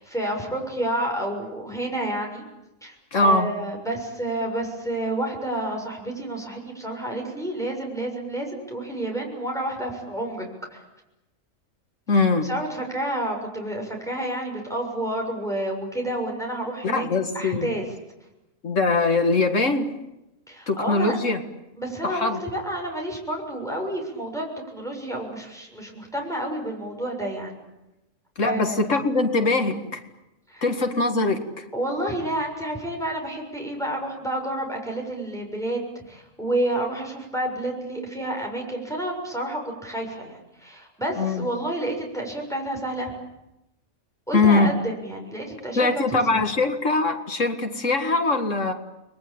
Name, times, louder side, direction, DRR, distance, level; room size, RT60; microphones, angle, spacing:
voice 1, 0.0-2.4 2.8-2.9 3.2-10.5 10.7-10.8 12.4-17.0 17.3-17.8 20.5-21.2 21.8-24.4 24.7-27.5 28.4-28.8 30.5-30.6 31.7-43.1 44.3-46.4, right 1 dB, ahead, 0 dB, 6.7 m, -29 dB
voice 2, 3.1-3.5 12.1-12.5 16.8-17.7 18.6-19.9 20.7-21.4 22.0-22.4 28.4-30.0 30.6-31.6 41.2-41.5 44.3-44.7 45.8-48.7, left 3 dB, 65° left, 6 dB, 2.4 m, -22 dB
30.0 x 22.0 x 8.8 m, 0.93 s
omnidirectional pair, 1.4 m